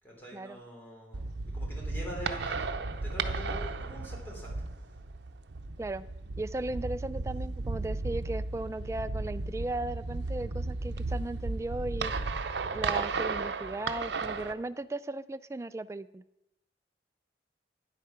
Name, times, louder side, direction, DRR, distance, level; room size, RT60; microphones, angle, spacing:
voice 1, 0.0-2.7 3.0-5.0, equal, 10° left, -3 dB, 3.1 m, -44 dB
sound 1, 1.1-14.5, right 3 dB, 85° right, 0.7 m, -34 dB
voice 2, 6.4-12.1 12.7-16.2, right 2 dB, 15° right, 13 dB, 0.3 m, -36 dB
9.8 x 8.3 x 5.8 m, 0.86 s
head